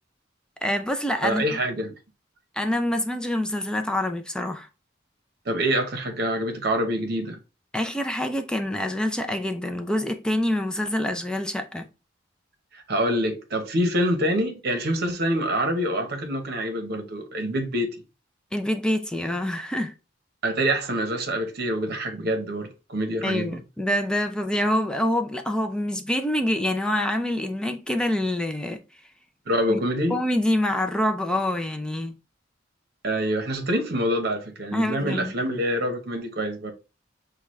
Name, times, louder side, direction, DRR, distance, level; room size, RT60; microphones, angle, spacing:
voice 1, 0.6-1.4 2.6-4.7 7.7-11.9 18.5-19.9 23.2-28.8 29.7-29.8 30.1-32.1 34.7-35.3, left 1 dB, 5° left, 0.4 m, -26 dB
voice 2, 1.2-1.9 5.5-7.4 12.7-18.0 20.4-23.6 29.5-30.2 33.0-36.7, equal, 55° right, 0.9 m, -26 dB
6.0 x 2.3 x 3.1 m
head